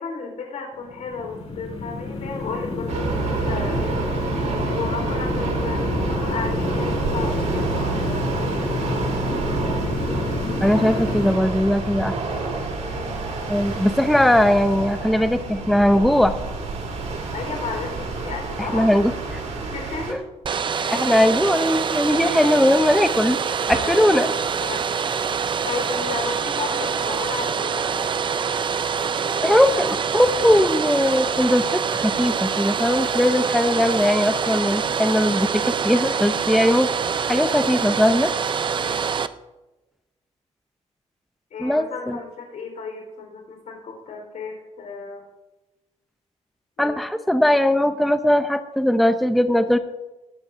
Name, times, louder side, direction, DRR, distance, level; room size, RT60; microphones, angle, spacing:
voice 1, 0.0-4.0 4.8-8.3 9.6-10.1 12.8-13.6 17.3-18.9 19.6-20.2 20.7-21.0 23.7-24.8 25.6-28.3 29.1-29.7 38.7-39.1 41.5-45.2 46.8-47.0, left 5 dB, 85° left, 1 dB, 4.2 m, -34 dB
sound 1, 0.8-11.3, left 2 dB, 60° left, 3.1 m, -28 dB
sound 2, 2.9-20.1, right 4 dB, 70° right, 5.5 m, -28 dB
voice 2, 10.6-12.2 13.5-16.3 18.6-19.4 20.1-20.2 20.9-23.4 23.7-24.3 29.4-36.9 37.3-38.3 41.6-42.2 46.8-49.8, left 1 dB, ahead, 9 dB, 0.6 m, -19 dB
Domestic sounds home sounds, 20.4-39.3, right 6 dB, 40° right, 0.5 m, -25 dB
19.5 x 15.0 x 2.6 m, 1.1 s
wide cardioid pair, 130°, 13 cm